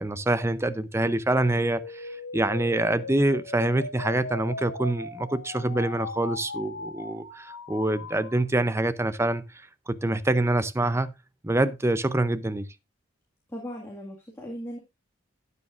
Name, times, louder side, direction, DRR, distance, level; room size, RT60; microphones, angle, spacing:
voice 1, 0.0-9.4 9.9-11.1 11.4-12.7, right 1 dB, 15° right, 0.5 m, -25 dB
sound 1, 1.4-8.4, left 3 dB, 85° left, 1.5 m, -39 dB
voice 2, 13.5-14.8, equal, 15° left, 2.0 m, -37 dB
12.5 x 9.7 x 2.5 m
head